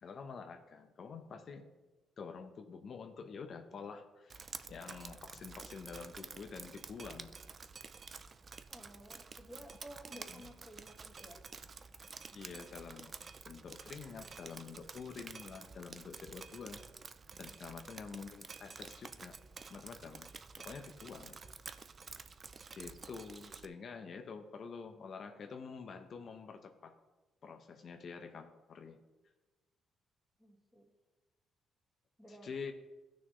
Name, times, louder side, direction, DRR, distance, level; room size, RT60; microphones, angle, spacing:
voice 1, 0.0-1.7 2.2-7.3 10.3-10.4 12.3-13.1 13.4-16.8 17.4-19.4 19.7-20.3 20.6-21.4 22.1-22.2 22.7-27.0 27.4-29.0 32.3-32.7, left 5 dB, 55° left, 6 dB, 0.9 m, -47 dB
Drip, 4.3-23.7, right 5 dB, 40° right, 0.4 m, -50 dB
voice 2, 8.7-11.4 17.5-17.6 30.4-30.9 32.2-32.5, equal, ahead, -1 dB, 2.1 m, -54 dB
15.5 x 6.2 x 3.2 m, 1.1 s
cardioid pair, 90°, 0 cm